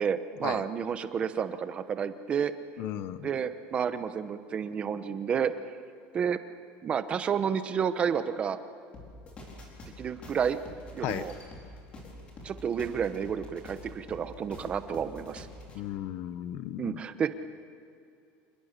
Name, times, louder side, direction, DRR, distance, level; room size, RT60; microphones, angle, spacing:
voice 1, 0.0-2.5 3.2-5.5 6.1-6.4 6.8-8.6 10.0-10.6 10.9-11.3 12.4-15.5 16.8-17.3, right 7 dB, 25° right, 11 dB, 1.0 m, -30 dB
voice 2, 2.8-3.3 11.0-11.2 15.7-17.0, left 12 dB, 45° left, 13 dB, 0.8 m, -35 dB
sound 1, 8.9-15.8, left 1 dB, 25° left, 4.5 m, -46 dB
27.5 x 21.5 x 6.8 m, 2.5 s
cardioid pair, 175°, 5 cm